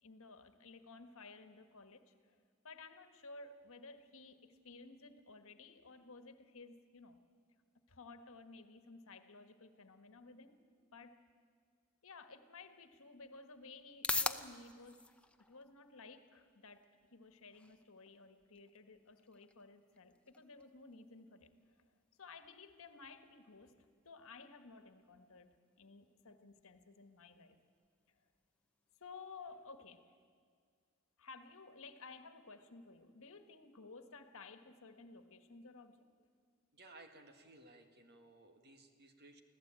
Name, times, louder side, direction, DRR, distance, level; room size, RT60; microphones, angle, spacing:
voice 1, 0.0-2.4 2.6-7.2 7.9-10.6 10.9-11.2 12.0-15.0 15.5-16.9 17.1-21.9 22.2-23.7 24.0-25.5 25.8-27.6 28.1-28.2 29.0-30.1 31.2-36.0, left 3 dB, 65° left, 9 dB, 1.5 m, -55 dB
sound 1, 12.6-29.5, left 2 dB, 5° left, 0.7 m, -48 dB
voice 2, 36.7-39.4, right 2 dB, 50° right, 6 dB, 2.0 m, -59 dB
24.5 x 16.0 x 8.9 m, 2.1 s
head